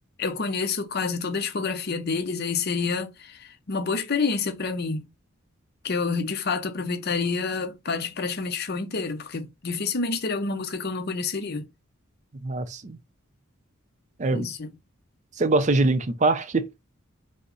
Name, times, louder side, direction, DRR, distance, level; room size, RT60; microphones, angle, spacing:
voice 1, 0.2-5.1 5.8-11.7 14.3-14.7, left 4 dB, 50° left, 0.7 m, -28 dB
voice 2, 12.4-13.0 14.2-14.5 15.4-16.7, right 2 dB, 35° right, 0.5 m, -23 dB
5.3 x 2.1 x 3.8 m
head